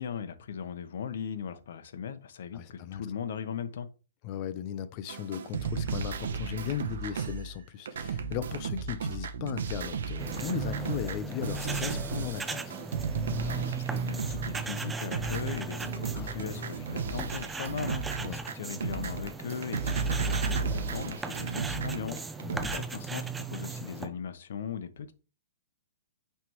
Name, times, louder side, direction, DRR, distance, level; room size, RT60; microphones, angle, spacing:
voice 1, 0.0-3.9 13.4-22.2 22.5-25.1, left 7 dB, 65° left, 0.9 m, -38 dB
voice 2, 2.5-3.1 4.2-12.8 16.1-16.6 18.2-18.4 22.4-22.9, left 10 dB, 35° left, 0.6 m, -37 dB
sound 1, 5.1-22.8, right 5 dB, 75° right, 0.8 m, -34 dB
sound 2, 10.2-24.1, right 4 dB, 10° right, 0.6 m, -37 dB
9.2 x 3.4 x 3.0 m
hypercardioid pair, 150°, 0 cm